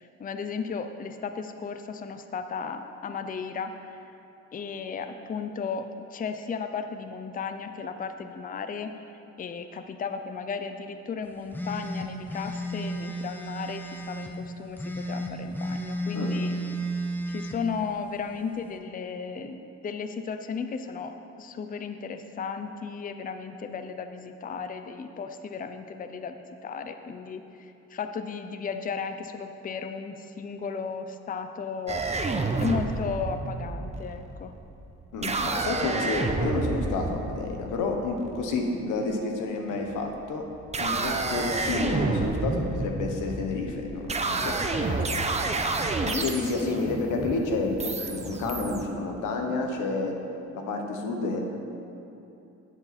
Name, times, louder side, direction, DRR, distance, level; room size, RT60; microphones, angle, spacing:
voice 1, 0.0-4.1 4.5-8.9 9.4-16.5 17.3-32.0 32.6-34.5 45.0-45.3 46.0-46.8, left 5 dB, 30° left, 8 dB, 0.5 m, -35 dB
sound 1, 11.5-14.3 14.8-17.6, right 1 dB, 5° left, 0.9 m, -32 dB
sound 2, 31.9-38.6 39.7-40.2 40.6-48.8, right 3 dB, 20° right, 0.7 m, -30 dB
voice 2, 35.1-40.4 40.8-45.3 46.2-50.1 50.5-51.4, left 3 dB, 90° left, 3 dB, 1.3 m, -30 dB
11.0 x 8.2 x 4.3 m, 2.9 s
cardioid pair, 90°, 30 cm